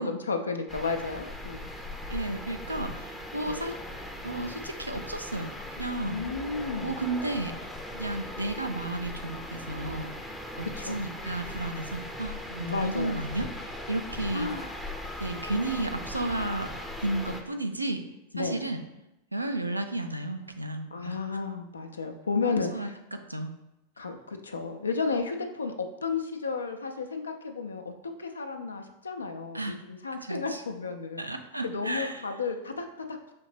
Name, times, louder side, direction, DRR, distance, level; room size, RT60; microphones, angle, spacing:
voice 1, 0.0-1.7 3.5-3.6 6.0-7.0 10.7-11.0 12.6-13.2 14.3-14.7 18.3-18.6 20.9-23.0 24.0-31.2 31.6-33.2, left 4 dB, 75° left, 5 dB, 0.4 m, -33 dB
sound 1, 0.7-17.4, left 1 dB, 5° left, 0.5 m, -39 dB
voice 2, 2.1-3.8 4.2-5.5 5.8-6.2 6.8-7.5 7.9-14.5 15.2-16.7 17.0-18.0 18.4-18.8 19.3-21.2 22.4-23.5 29.5-29.8 30.2-30.6 31.2-32.3, right 2 dB, 85° right, 6 dB, 0.4 m, -33 dB
5.7 x 2.7 x 3.2 m, 0.91 s
figure-of-eight pair, 90°, 0 cm